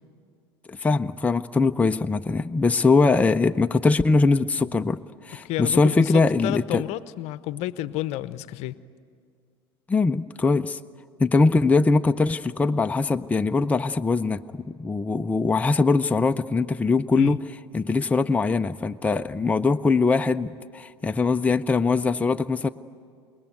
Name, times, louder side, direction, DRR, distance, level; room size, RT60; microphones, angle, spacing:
voice 1, 0.7-6.8 9.9-10.8 11.2-17.4 17.7-22.7, left 3 dB, 10° left, 8 dB, 0.6 m, -22 dB
voice 2, 5.4-8.7 17.1-17.4, left 15 dB, 55° left, 16 dB, 0.9 m, -31 dB
26.5 x 21.0 x 9.5 m, 2.2 s
hypercardioid pair, 80°, 14 cm